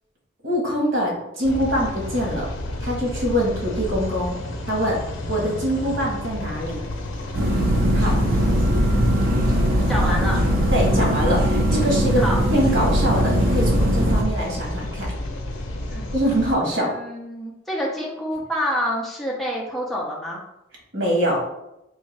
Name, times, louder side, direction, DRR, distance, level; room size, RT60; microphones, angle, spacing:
voice 1, 0.4-2.5 2.8-4.4 4.6-5.0 5.3-6.8 7.9-8.2 10.7-12.2 12.5-15.1 16.1-16.9 20.9-21.4, equal, 80° right, -1 dB, 1.3 m, -23 dB
sound 1, 1.4-16.5, left 1 dB, 80° left, 0.5 m, -31 dB
sound 2, 7.3-14.2, equal, 45° right, 0.5 m, -20 dB
voice 2, 9.9-10.4 12.1-12.4 15.9-16.1 16.8-20.4, equal, ahead, -4 dB, 0.5 m, -27 dB
3.5 x 2.6 x 3.2 m, 0.88 s
head